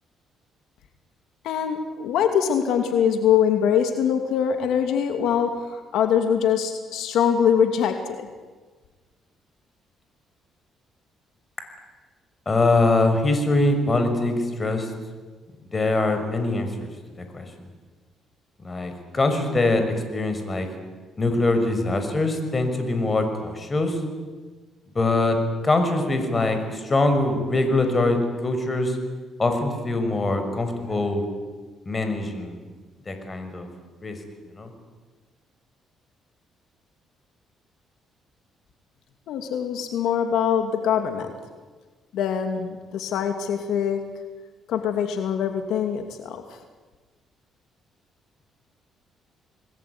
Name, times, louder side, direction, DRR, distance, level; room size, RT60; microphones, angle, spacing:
voice 1, 1.4-8.3 39.3-41.3 42.1-44.0 44.7-46.6, left 8 dB, 80° left, 6 dB, 2.6 m, -23 dB
voice 2, 12.5-14.9 15.7-16.9 17.3-17.4 18.6-19.8 20.1-20.7 21.2-24.0 24.9-25.4 25.6-29.0 29.4-31.2 31.9-32.6 33.1-33.7 34.0-34.2 34.5-34.7, left 2 dB, 25° left, 7 dB, 5.9 m, -23 dB
27.5 x 20.5 x 9.6 m, 1.4 s
cardioid pair, 100°, 0 cm